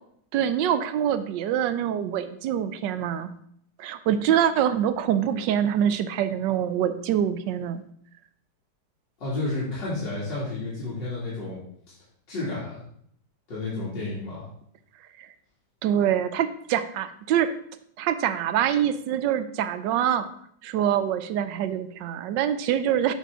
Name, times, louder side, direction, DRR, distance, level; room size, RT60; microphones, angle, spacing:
voice 1, 0.3-3.3 3.8-7.8 15.2-15.3 15.8-17.5 18.0-20.3 20.6-23.1, right 9 dB, 85° right, 11 dB, 1.3 m, -25 dB
voice 2, 9.2-11.6 12.3-12.8 13.5-14.5, left 2 dB, 90° left, -9 dB, 3.0 m, -31 dB
7.3 x 5.9 x 3.6 m, 0.66 s
omnidirectional pair, 1.9 m